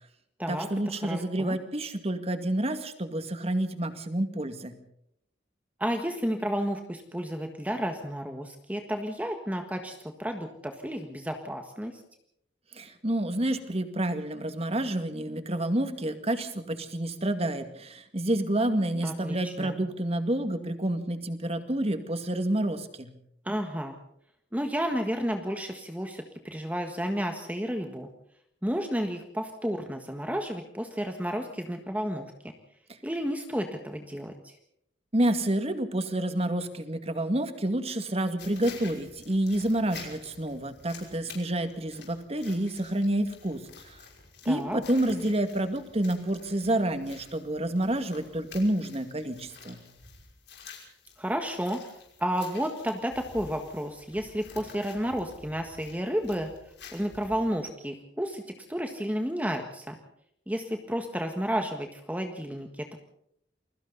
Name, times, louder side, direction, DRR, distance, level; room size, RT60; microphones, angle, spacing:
voice 1, 0.5-4.8 12.7-23.1 35.1-44.0 44.5-49.8, right 1 dB, 35° right, 8 dB, 2.1 m, -29 dB
voice 2, 1.0-1.6 5.8-12.0 19.0-19.7 23.4-23.9 24.5-28.1 28.6-32.2 33.0-34.5 44.4-44.8 51.2-51.8 52.2-56.5 56.9-58.4 58.7-60.0 60.5-63.0, equal, 10° right, 5 dB, 1.6 m, -31 dB
sound 1, 38.4-57.5, left 4 dB, 70° left, 5.7 m, -49 dB
29.0 x 22.0 x 4.1 m, 0.71 s
head